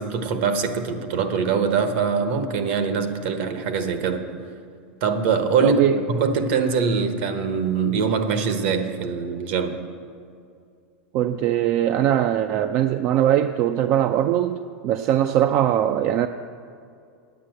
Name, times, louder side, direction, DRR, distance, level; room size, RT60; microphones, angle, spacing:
voice 1, 0.0-4.2 5.0-5.8 6.1-9.8, right 5 dB, 65° right, 8 dB, 1.2 m, -23 dB
voice 2, 5.6-6.0 11.1-14.6 14.8-16.3, right 11 dB, 45° right, 8 dB, 0.4 m, -21 dB
9.5 x 8.6 x 7.7 m, 2.4 s
supercardioid pair, 125°, 6 cm